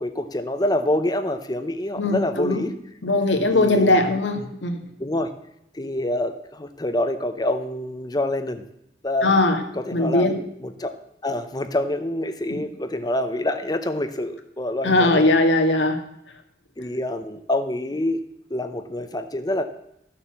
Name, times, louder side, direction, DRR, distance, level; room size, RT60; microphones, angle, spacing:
voice 1, 0.0-2.7 3.5-4.0 5.0-5.3 5.7-8.6 9.0-9.3 9.7-10.3 10.6-10.9 11.2-15.3 16.8-18.2 18.5-19.6, left 1 dB, 20° left, 9 dB, 0.7 m, -26 dB
voice 2, 2.0-2.6 3.0-4.8 9.2-9.6 9.9-10.4 14.8-16.0, left 2 dB, 85° left, 4 dB, 1.9 m, -20 dB
13.5 x 7.0 x 7.4 m, 0.77 s
head